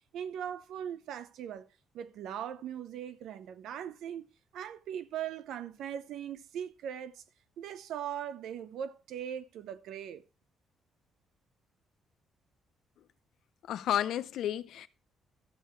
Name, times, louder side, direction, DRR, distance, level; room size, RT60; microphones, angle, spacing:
voice 1, 0.1-1.7 1.9-4.3 4.5-7.2 7.6-10.2, right 9 dB, 80° right, 0.7 m, -40 dB
voice 2, 13.6-14.9, left 11 dB, 75° left, 0.6 m, -31 dB
12.5 x 6.5 x 4.5 m
cardioid pair, 90°, 0 cm